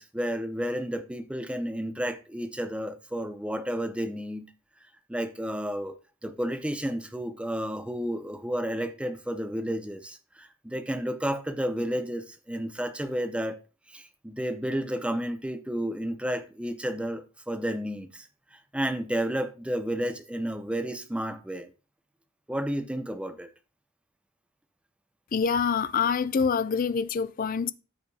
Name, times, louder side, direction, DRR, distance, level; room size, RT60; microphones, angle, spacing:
voice 1, 0.0-4.5 5.1-5.9 6.2-13.6 13.9-21.7 22.5-23.5, equal, 5° right, 0.6 m, -31 dB
voice 2, 25.3-27.7, left 6 dB, 40° left, 0.4 m, -26 dB
13.5 x 5.1 x 2.8 m
head